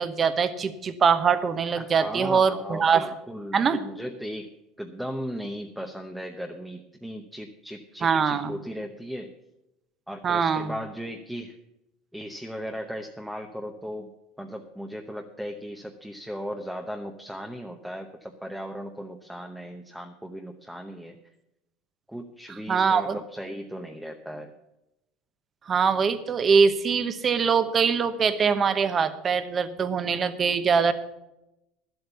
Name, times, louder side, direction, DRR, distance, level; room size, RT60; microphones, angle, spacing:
voice 1, 0.0-3.1 3.5-3.8 8.0-8.5 10.2-10.7 22.7-23.2 25.7-30.9, right 6 dB, 30° right, 12 dB, 0.9 m, -23 dB
voice 2, 1.8-4.5 4.8-9.3 10.1-11.5 12.1-14.1 14.4-21.2 22.1-24.5, equal, ahead, 4 dB, 0.8 m, -37 dB
11.5 x 8.1 x 6.9 m, 0.89 s
supercardioid pair, 135°, 0 cm